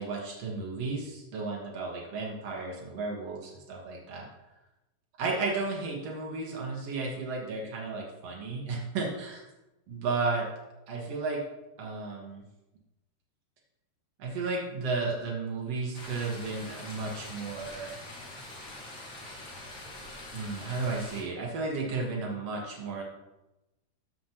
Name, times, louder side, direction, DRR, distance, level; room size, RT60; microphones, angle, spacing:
voice 1, 0.0-4.3 5.2-9.4 9.9-10.5 10.9-11.4 11.8-12.4 14.2-18.0 20.3-23.0, right 3 dB, 70° right, -2 dB, 1.4 m, -33 dB
sound 1, 15.9-21.2, left 1 dB, 85° left, 0.9 m, -44 dB
13.5 x 7.5 x 3.0 m, 0.99 s
omnidirectional pair, 5.3 m